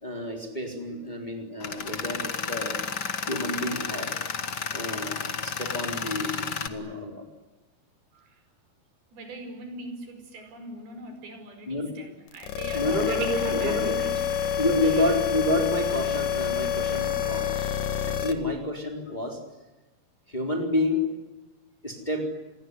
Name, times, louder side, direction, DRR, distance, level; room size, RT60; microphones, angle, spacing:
voice 1, 0.0-2.8 3.3-4.2 4.7-7.2 11.7-11.9 12.7-14.0 14.6-17.7 18.0-19.4 20.3-21.1 21.8-22.3, left 1 dB, 10° left, 3 dB, 3.6 m, -29 dB
Tools, 1.6-6.7, left 6 dB, 45° left, 1.3 m, -32 dB
voice 2, 9.1-15.1 18.4-18.6, right 2 dB, 85° right, 6 dB, 7.1 m, -40 dB
sound 1, 12.3-18.3, left 8 dB, 65° left, 3.0 m, -27 dB
28.0 x 21.0 x 9.7 m, 1.1 s
omnidirectional pair, 4.3 m